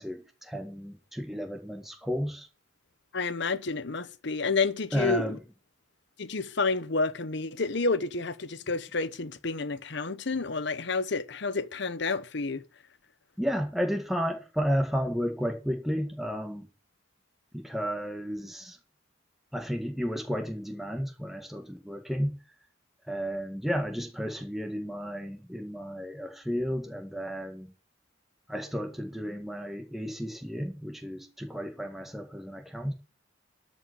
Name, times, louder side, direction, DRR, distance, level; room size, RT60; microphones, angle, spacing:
voice 1, 0.0-2.5 4.9-5.4 13.4-16.7 17.5-18.8 19.5-22.4 23.1-27.7 28.5-32.9, equal, ahead, 1.8 m, -32 dB
voice 2, 3.1-5.4 6.2-12.6, left 4 dB, 60° left, 0.9 m, -30 dB
12.5 x 5.3 x 8.4 m
head